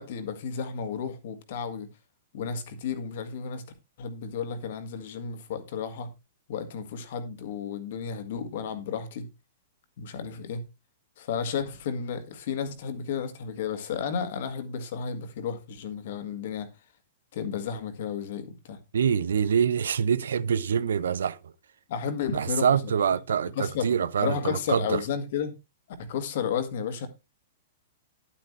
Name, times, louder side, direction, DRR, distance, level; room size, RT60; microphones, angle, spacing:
voice 1, 0.0-1.9 2.3-3.7 4.0-6.1 6.5-9.3 10.0-10.7 11.2-16.7 17.3-18.8 21.9-23.0 23.6-23.9 24.2-25.5 26.0-27.1, left 7 dB, 55° left, 1.9 m, -32 dB
voice 2, 18.9-21.5 22.3-25.0, right 7 dB, 70° right, 0.6 m, -25 dB
11.5 x 8.5 x 3.2 m
figure-of-eight pair, 110°, 0 cm